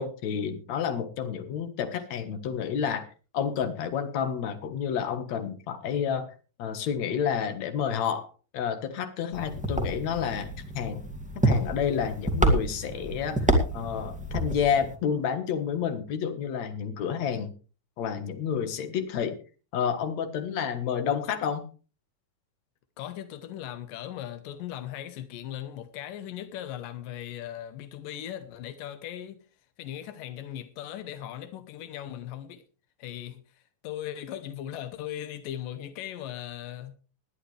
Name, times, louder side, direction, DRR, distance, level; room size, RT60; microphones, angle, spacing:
voice 1, 0.0-3.1 3.3-6.3 6.6-11.0 11.4-17.5 18.0-19.4 19.7-21.7, left 7 dB, 60° left, 2.6 m, -30 dB
sound 1, 9.3-14.9, right 1 dB, 5° right, 1.4 m, -28 dB
voice 2, 23.0-29.4 29.8-32.6 33.0-37.0, left 11 dB, 90° left, 2.7 m, -38 dB
20.0 x 11.0 x 3.3 m
omnidirectional pair, 3.7 m